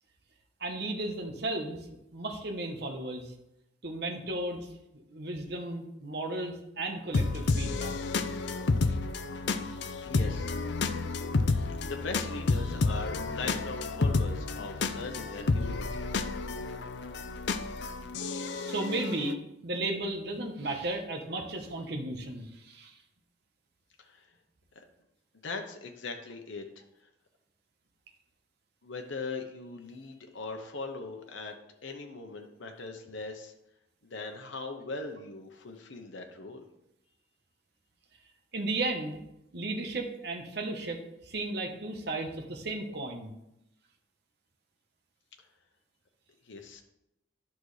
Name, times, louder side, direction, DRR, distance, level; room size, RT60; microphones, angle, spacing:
voice 1, 0.6-1.9 2.1-3.3 3.8-4.7 5.1-7.9 8.6-9.0 18.5-19.4 19.6-23.0 38.5-39.2 39.5-43.3, right 2 dB, 60° right, 3 dB, 1.1 m, -35 dB
sound 1, 7.1-19.3, left 3 dB, 65° left, 0.5 m, -30 dB
voice 2, 10.0-10.6 11.8-16.1 24.0-24.3 24.7-24.8 25.4-26.7 28.8-31.5 31.8-33.5 34.0-36.6 45.4-45.5 46.4-46.8, left 3 dB, 80° left, 4 dB, 0.9 m, -40 dB
10.5 x 6.0 x 3.3 m, 0.85 s
head